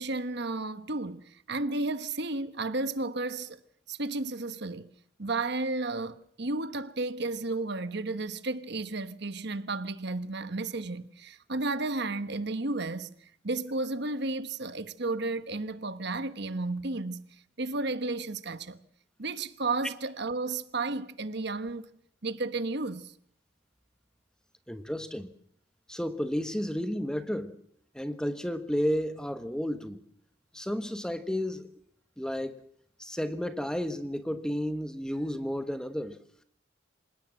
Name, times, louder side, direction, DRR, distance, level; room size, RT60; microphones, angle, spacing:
voice 1, 0.0-3.6 3.9-4.9 5.2-17.2 17.6-18.8 19.2-21.9 22.2-23.1, right 3 dB, 55° right, 1.2 m, -33 dB
voice 2, 24.7-25.3 25.9-27.6 27.9-30.0 30.5-31.7 32.2-32.6 33.0-36.2, equal, 5° left, 1.1 m, -32 dB
27.0 x 18.0 x 7.7 m
head